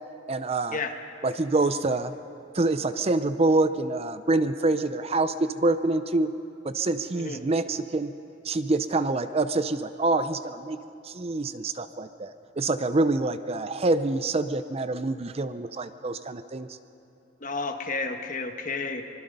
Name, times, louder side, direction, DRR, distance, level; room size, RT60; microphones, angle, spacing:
voice 1, 0.3-0.8 1.2-2.1 2.5-6.3 6.6-8.1 8.4-10.8 11.0-16.8, right 2 dB, 30° right, 12 dB, 0.5 m, -26 dB
voice 2, 17.4-19.0, left 3 dB, 45° left, 5 dB, 1.3 m, -31 dB
25.0 x 21.5 x 5.4 m, 2.8 s
head